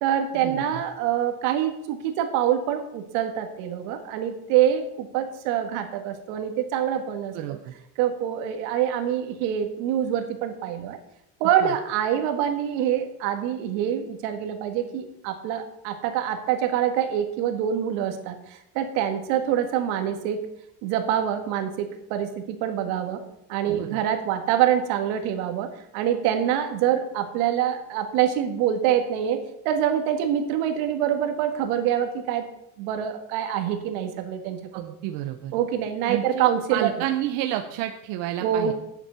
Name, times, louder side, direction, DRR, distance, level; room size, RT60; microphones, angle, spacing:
voice 1, 0.0-7.6 8.0-11.0 11.4-20.5 20.8-23.2 23.5-32.5 32.8-34.6 34.9-35.0 35.5-36.9 38.4-38.7, right 10 dB, 85° right, 7 dB, 1.9 m, -25 dB
voice 2, 7.3-7.7 11.6-11.7 23.7-24.0 34.7-35.5 36.1-38.7, right 12 dB, 65° right, 4 dB, 1.0 m, -30 dB
9.8 x 7.5 x 7.0 m, 0.84 s
cardioid pair, 165°, 45 cm